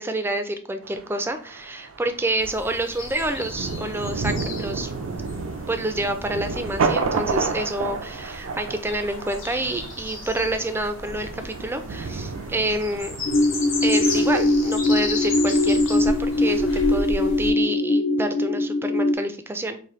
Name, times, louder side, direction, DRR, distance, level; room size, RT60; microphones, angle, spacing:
voice 1, 0.0-4.9 5.7-13.2 13.8-19.8, right 1 dB, 10° right, 8 dB, 0.3 m, -28 dB
Thunder, 0.8-17.0, right 4 dB, 85° right, 0.4 m, -32 dB
sound 1, 2.4-17.5, left 3 dB, 80° left, 1.2 m, -35 dB
sound 2, 13.3-19.1, left 2 dB, 60° left, 0.5 m, -21 dB
4.2 x 2.6 x 3.0 m, 0.43 s
head